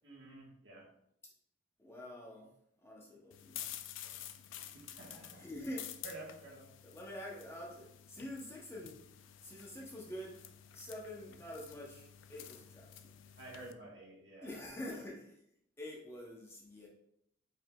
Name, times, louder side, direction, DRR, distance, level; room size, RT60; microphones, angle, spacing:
voice 1, 0.0-0.9 4.7-5.5 6.0-6.7 13.4-14.6 14.9-15.0, right 2 dB, 65° right, -3 dB, 1.3 m, -51 dB
voice 2, 1.8-2.5 2.8-3.7 4.0-4.2 5.4-5.9 6.8-9.0 9.4-10.4 10.7-13.4 14.4-15.4 15.8-16.9, left 1 dB, 15° left, -3 dB, 0.7 m, -47 dB
sound 1, 3.3-13.7, left 11 dB, 90° left, 0.3 m, -50 dB
4.9 x 3.7 x 2.3 m, 0.74 s
head